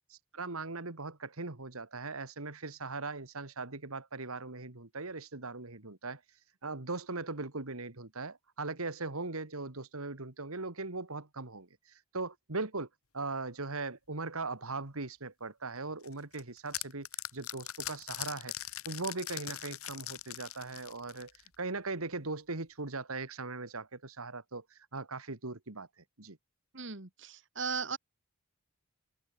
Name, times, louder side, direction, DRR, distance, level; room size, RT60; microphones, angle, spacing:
voice 1, 0.1-6.2 6.6-12.9 13.1-17.1 17.3-21.3 21.6-25.9 26.2-26.4, right 3 dB, 80° right, 2.2 m, -39 dB
sound 1, 16.0-21.6, left 13 dB, 80° left, 2.3 m, -41 dB
voice 2, 26.7-28.0, right 5 dB, 55° right, 2.2 m, -37 dB
open air
head